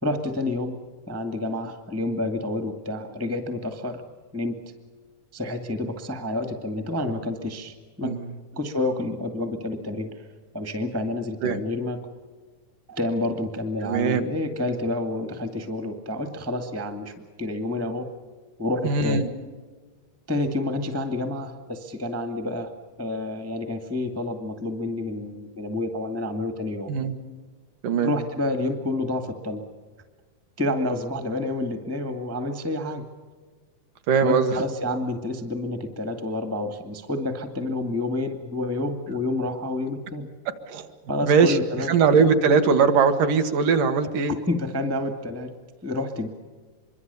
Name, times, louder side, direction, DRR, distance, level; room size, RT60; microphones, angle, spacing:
voice 1, 0.0-0.7 1.1-4.0 4.3-4.7 5.3-8.1 8.5-10.3 10.5-12.1 12.9-18.1 18.6-19.2 20.3-22.7 23.0-26.9 28.0-29.6 30.6-33.0 34.2-40.3 41.1-42.0 44.5-45.5 45.8-46.3, left 2 dB, 10° right, 7 dB, 0.9 m, -29 dB
voice 2, 13.8-14.2 18.8-19.3 26.9-27.2 27.8-28.1 34.1-34.6 40.7-40.9 41.2-44.3, right 5 dB, 70° right, 6 dB, 2.9 m, -21 dB
25.5 x 23.0 x 7.0 m, 1.5 s
omnidirectional pair, 4.0 m